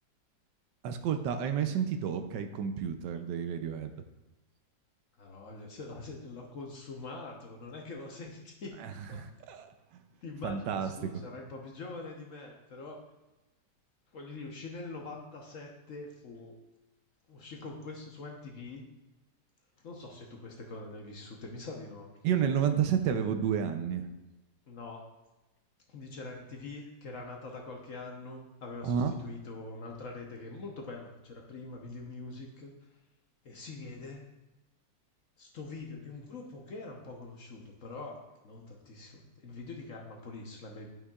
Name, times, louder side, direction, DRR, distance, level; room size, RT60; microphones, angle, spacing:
voice 1, 0.8-3.9 8.8-9.7 10.4-10.9 22.2-24.0 28.8-29.1, right 8 dB, 80° right, 8 dB, 1.3 m, -30 dB
voice 2, 5.2-8.8 9.1-9.2 10.2-13.0 14.1-16.6 17.3-18.9 19.8-22.1 24.7-25.1 25.9-32.7 33.4-34.2 35.4-40.9, left 3 dB, 55° left, 0 dB, 1.0 m, -44 dB
11.5 x 5.5 x 2.3 m, 1.0 s
omnidirectional pair, 1.9 m